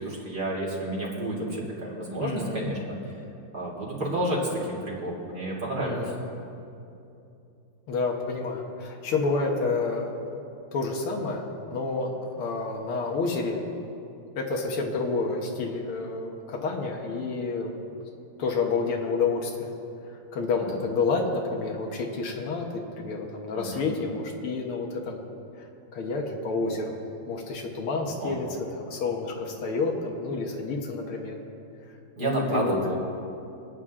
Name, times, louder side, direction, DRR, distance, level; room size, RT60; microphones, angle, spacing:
voice 1, 0.0-3.0 3.5-4.4 4.7-6.0 20.5-20.8 23.6-23.8 28.2-28.5 32.2-32.9, right 1 dB, 45° right, -5 dB, 3.5 m, -30 dB
voice 2, 2.2-2.7 5.8-6.1 7.9-10.4 10.7-13.6 14.4-17.9 18.4-19.7 20.3-25.2 25.9-27.0 27.3-28.5 28.8-31.4 32.2-32.7, left 4 dB, 85° left, 1 dB, 2.1 m, -29 dB
24.5 x 9.4 x 3.7 m, 2.7 s
omnidirectional pair, 2.3 m